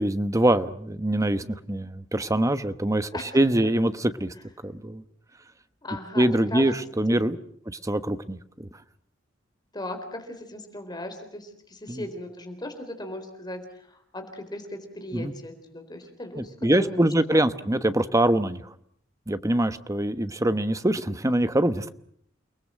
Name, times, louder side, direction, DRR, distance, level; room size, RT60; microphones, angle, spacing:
voice 1, 0.0-4.3 4.6-5.0 6.2-7.4 7.7-8.7 11.9-12.1 15.1-15.3 16.4-18.7 19.3-21.9, right 1 dB, 15° right, 12 dB, 1.1 m, -24 dB
voice 2, 5.8-6.7 7.1-7.2 9.7-17.4, left 1 dB, 20° left, 6 dB, 3.9 m, -38 dB
29.5 x 20.0 x 7.5 m, 0.65 s
head